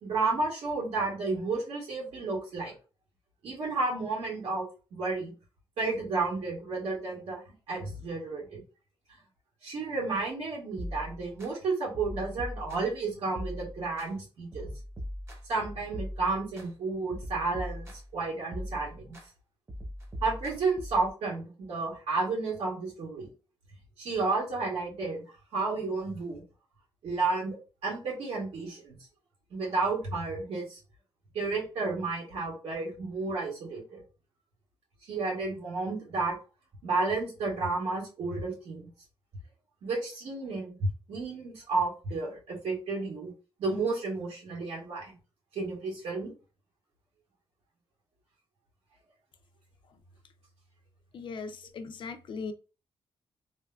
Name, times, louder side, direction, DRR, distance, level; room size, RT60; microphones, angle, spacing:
voice 1, 0.0-2.7 3.4-4.6 4.9-5.3 5.8-7.4 7.7-8.6 9.6-14.7 15.5-19.2 20.2-23.3 24.0-25.2 25.5-26.4 27.0-27.6 27.8-29.0 29.5-30.8 31.3-34.0 35.1-36.4 36.8-38.9 39.8-40.7 41.1-43.3 43.6-45.1 45.6-46.3, right 3 dB, 90° right, 1.8 m, -32 dB
sound 1, 10.8-11.5 11.9-13.0 13.4-14.1 14.5-16.7 17.1-18.2 18.5-19.3 19.7-21.1, equal, 25° right, 0.8 m, -40 dB
voice 2, 51.1-52.5, left 4 dB, 55° left, 0.5 m, -39 dB
3.4 x 2.8 x 2.3 m
wide cardioid pair, 160°, 10 cm